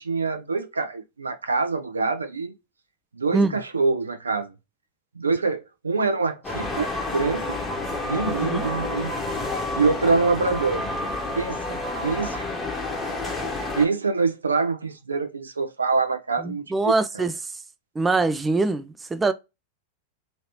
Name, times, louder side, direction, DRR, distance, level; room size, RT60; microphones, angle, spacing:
voice 1, 0.0-2.5 3.1-4.5 5.1-7.6 8.0-9.1 9.7-10.8 11.3-12.5 13.3-13.4 13.7-17.2, right 4 dB, 80° right, 0.6 m, -25 dB
sound 1, 6.4-13.9, left 2 dB, 15° left, 0.9 m, -29 dB
voice 2, 16.4-17.5 18.0-19.3, right 3 dB, 15° right, 0.3 m, -23 dB
3.1 x 2.7 x 2.8 m
figure-of-eight pair, 90°, 0 cm